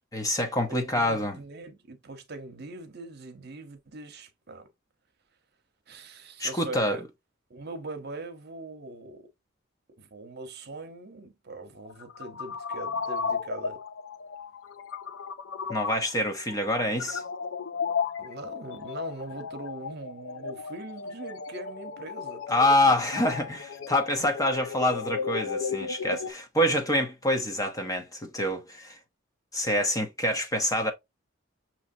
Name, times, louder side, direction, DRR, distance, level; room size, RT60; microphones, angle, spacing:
voice 1, 0.1-1.4 6.4-7.0 15.7-17.2 22.5-29.0 29.5-30.9, left 1 dB, 20° left, 0.9 m, -26 dB
voice 2, 0.7-4.7 5.9-7.0 7.5-9.3 10.0-13.8 18.2-23.0 23.3-23.6 23.9-24.3, right 2 dB, 55° right, 1.0 m, -42 dB
sound 1, 11.8-26.3, left 5 dB, 75° left, 0.6 m, -35 dB
6.3 x 3.0 x 2.7 m
head